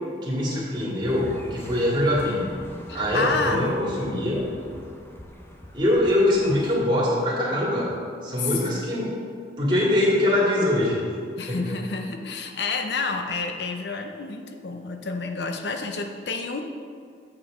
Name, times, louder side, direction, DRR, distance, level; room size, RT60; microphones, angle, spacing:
voice 1, 0.2-2.5 2.9-4.4 5.7-7.9 8.2-9.1 9.6-11.0 11.5-11.7, left 1 dB, 30° right, -6 dB, 2.4 m, -23 dB
sound 1, 1.0-6.8, left 1 dB, 15° left, 0.7 m, -41 dB
voice 2, 2.9-3.8 8.4-8.8 11.4-16.6, left 4 dB, 70° left, 5 dB, 0.6 m, -29 dB
8.8 x 7.3 x 3.7 m, 2.2 s
head